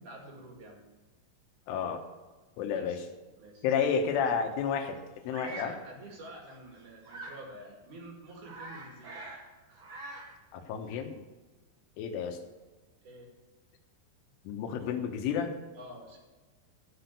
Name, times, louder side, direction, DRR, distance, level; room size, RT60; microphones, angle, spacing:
voice 1, 0.0-0.8 2.7-3.0 3.4-4.3 5.4-9.2 9.5-9.9 10.9-11.0 13.0-13.3 14.8-14.9 15.7-16.2, right 1 dB, 50° right, 0 dB, 3.2 m, -49 dB
voice 2, 1.7-2.0 2.6-3.0 3.6-5.0 5.3-5.7 10.5-11.2 12.0-12.4 14.5-15.5, left 7 dB, 85° left, 5 dB, 3.6 m, -30 dB
Bird vocalization bird call bird song, 5.3-5.8 7.0-7.4 7.9-8.0 8.3-9.5 9.7-10.4, right 2 dB, 85° right, 1.1 m, -44 dB
13.5 x 6.0 x 6.8 m, 1.3 s
omnidirectional pair, 5.5 m